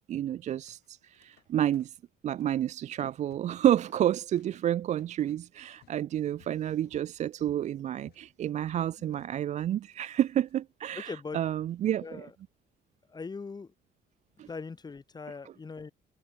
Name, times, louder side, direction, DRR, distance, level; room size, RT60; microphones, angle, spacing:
voice 1, 0.1-1.9 2.2-12.3 14.4-14.5, right 11 dB, 45° right, 0.4 m, -30 dB
sound 1, 0.7-1.5 1.7-2.6 2.9-3.6 3.9-10.6, left 14 dB, 75° left, 5.0 m, -64 dB
voice 2, 10.9-11.4 12.0-12.3 13.1-13.7 14.5-15.9, left 4 dB, 25° left, 3.3 m, -40 dB
cardioid pair, 110°, 17 cm